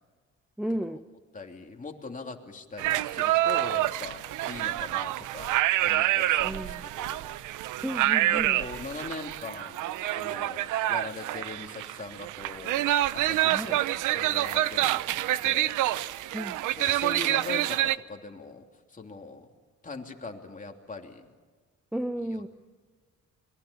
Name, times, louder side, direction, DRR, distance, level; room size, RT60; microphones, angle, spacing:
voice 1, 0.6-1.0 6.4-6.9 7.8-8.6 13.5-13.8 16.3-16.6 21.9-22.5, equal, ahead, 9 dB, 0.9 m, -33 dB
voice 2, 1.3-4.2 4.5-5.5 5.8-7.3 8.3-12.8 13.1-15.8 16.8-18.6 18.9-19.5 19.8-21.3 22.3-22.5, left 3 dB, 25° left, 3 dB, 3.2 m, -41 dB
sound 1, 2.8-18.0, right 14 dB, 90° right, 0.7 m, -27 dB
30.0 x 22.0 x 7.0 m, 1.4 s
cardioid pair, 90°, 30 cm